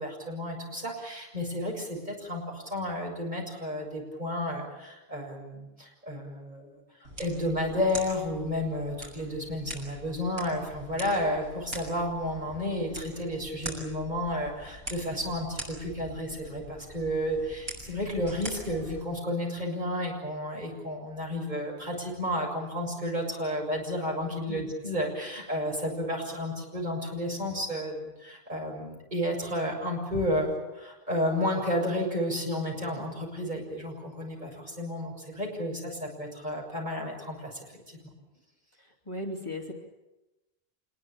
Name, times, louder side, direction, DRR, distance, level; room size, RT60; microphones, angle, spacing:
voice 1, 0.0-6.8 7.2-38.0, left 1 dB, 45° right, 0 dB, 7.1 m, -32 dB
sound 1, 7.0-19.0, equal, 70° right, 7.2 m, -43 dB
voice 2, 38.8-39.7, left 1 dB, 30° left, 1 dB, 3.3 m, -37 dB
26.0 x 21.0 x 8.8 m, 1.0 s
omnidirectional pair, 1.0 m